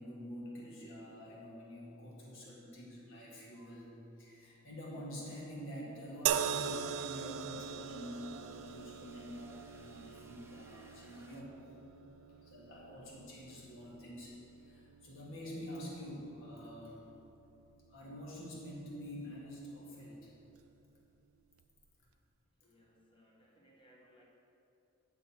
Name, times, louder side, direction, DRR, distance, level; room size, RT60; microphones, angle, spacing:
voice 1, 0.0-3.9 4.2-11.6 12.4-17.0 17.9-20.3, equal, 65° left, -4 dB, 1.9 m, -47 dB
sound 1, 5.9-11.4, right 3 dB, 10° right, 0.6 m, -66 dB
sound 2, 6.3-19.6 20.5-20.7, right 8 dB, 85° right, 0.4 m, -42 dB
voice 2, 22.6-24.2, equal, 25° left, -3 dB, 1.3 m, -65 dB
9.4 x 6.6 x 4.4 m, 2.8 s
head